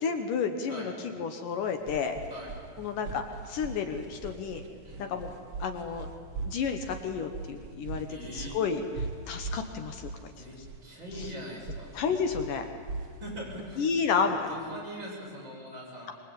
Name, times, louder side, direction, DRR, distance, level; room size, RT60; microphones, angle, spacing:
voice 1, 0.0-2.2 2.8-4.6 5.0-5.3 5.6-6.1 6.4-8.1 8.3-8.8 9.3-10.1 10.4-10.5 11.2-11.3 11.9-12.7 13.8-14.4, left 6 dB, 70° left, 6 dB, 2.6 m, -31 dB
sound 1, 1.5-14.8, right 4 dB, 50° right, 1.7 m, -41 dB
voice 2, 8.1-8.6 10.3-10.6 10.8-11.9 13.2-13.9 14.2-16.1, equal, 30° right, -4 dB, 7.9 m, -42 dB
24.5 x 22.0 x 8.9 m, 2.1 s
omnidirectional pair, 4.1 m